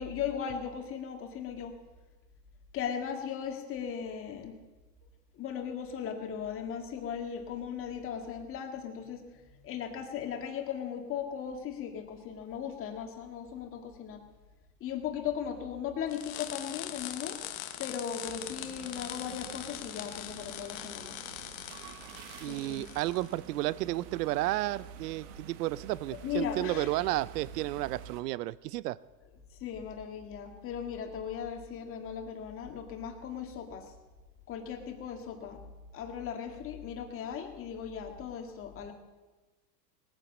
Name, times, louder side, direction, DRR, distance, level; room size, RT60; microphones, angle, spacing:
voice 1, 0.0-1.7 2.7-4.5 5.3-9.2 9.5-14.2 14.8-17.4 17.8-21.2 22.5-22.9 26.2-26.9 29.6-33.9 34.5-35.6 35.9-38.9, left 8 dB, 25° left, 4 dB, 2.0 m, -37 dB
sound 1, 16.1-23.3, left 13 dB, 45° left, 1.1 m, -42 dB
sound 2, 18.2-28.2, right 8 dB, 55° right, 1.4 m, -48 dB
voice 2, 22.4-29.0, right 17 dB, 70° right, 20 dB, 0.7 m, -32 dB
19.0 x 9.4 x 7.2 m, 1.2 s
supercardioid pair, 155°, 49 cm